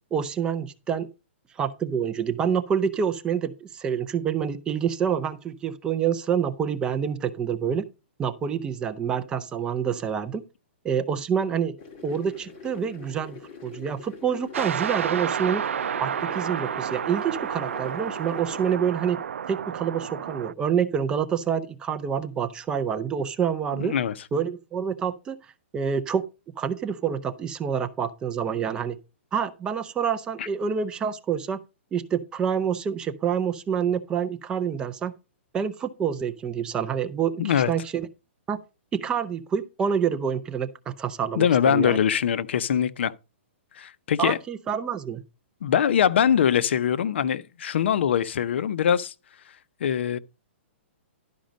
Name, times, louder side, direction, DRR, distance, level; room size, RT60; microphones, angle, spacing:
voice 1, 0.1-1.1 1.6-7.8 8.2-10.4 10.8-11.7 12.0-13.4 13.6-15.6 16.0-19.2 19.5-23.9 24.3-25.4 25.7-26.2 26.6-29.0 29.3-31.6 31.9-35.1 35.5-37.3 37.7-38.1 38.5-38.6 38.9-42.0 44.2-45.2, right 7 dB, 10° right, 0.5 m, -27 dB
sound 1, 11.8-18.8, left 5 dB, 30° left, 2.0 m, -44 dB
sound 2, 14.5-20.5, right 8 dB, 85° right, 0.4 m, -30 dB
voice 2, 23.8-24.1 30.4-30.5 37.4-37.7 41.4-43.1 43.7-44.4 45.6-49.1 49.8-50.2, left 8 dB, 60° left, 0.6 m, -22 dB
11.5 x 5.2 x 5.1 m
hypercardioid pair, 165°, 7 cm